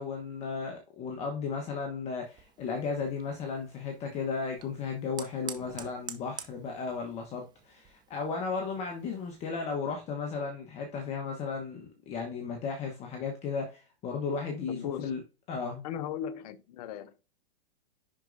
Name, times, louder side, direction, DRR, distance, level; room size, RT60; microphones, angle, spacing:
voice 1, 0.0-15.2 15.5-15.8, left 5 dB, 20° left, 1.1 m, -35 dB
Fire, 2.2-9.5, right 8 dB, 15° right, 0.7 m, -48 dB
voice 2, 14.7-15.1 15.8-17.2, left 9 dB, 40° left, 0.8 m, -37 dB
10.5 x 4.5 x 2.6 m
hypercardioid pair, 145°, 29 cm